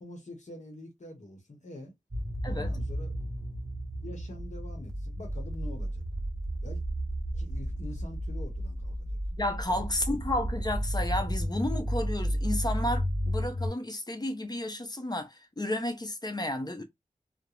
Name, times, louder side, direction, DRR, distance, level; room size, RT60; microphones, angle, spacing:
voice 1, 0.0-1.9 2.5-3.2 4.0-6.0 6.6-6.8 7.3-9.2 9.7-9.9, left 1 dB, 60° left, 0.9 m, -45 dB
sound 1, 2.1-13.7, equal, 25° right, 0.7 m, -32 dB
voice 2, 9.3-16.8, left 1 dB, 30° left, 0.6 m, -32 dB
2.3 x 2.0 x 2.9 m
wide cardioid pair, 55°, 14 cm